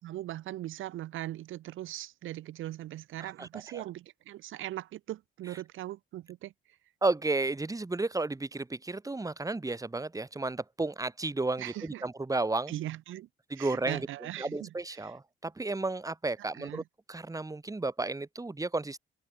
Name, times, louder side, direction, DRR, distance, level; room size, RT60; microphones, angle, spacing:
voice 1, 0.0-6.5 11.6-12.1 12.7-13.3 13.5-15.1 16.4-16.8, right 14 dB, 85° right, 4.3 m, -40 dB
voice 2, 7.0-12.7 13.5-14.0 14.4-16.8 17.1-19.0, right 2 dB, 15° right, 3.6 m, -32 dB
open air
cardioid pair, 90°, 20 cm